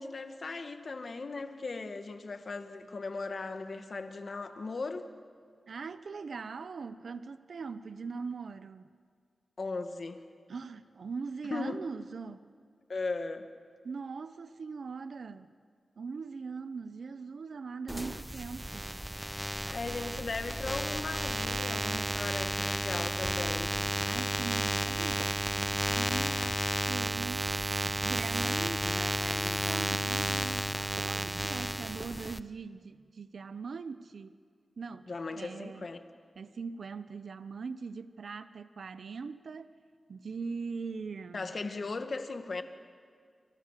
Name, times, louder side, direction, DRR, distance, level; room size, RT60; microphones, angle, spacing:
voice 1, 0.0-5.1 9.6-10.2 11.5-11.8 12.9-13.5 19.7-23.7 35.1-36.0 41.3-42.6, left 3 dB, 50° left, 2.0 m, -37 dB
voice 2, 5.7-8.9 10.5-12.5 13.8-15.5 16.0-19.0 24.0-27.5 28.0-34.4 34.8-35.9 36.4-39.7 40.1-41.5, right 5 dB, 70° right, 0.9 m, -41 dB
sound 1, 17.9-32.4, equal, 5° right, 0.7 m, -32 dB
30.0 x 25.5 x 7.6 m
wide cardioid pair, 105°, 0 cm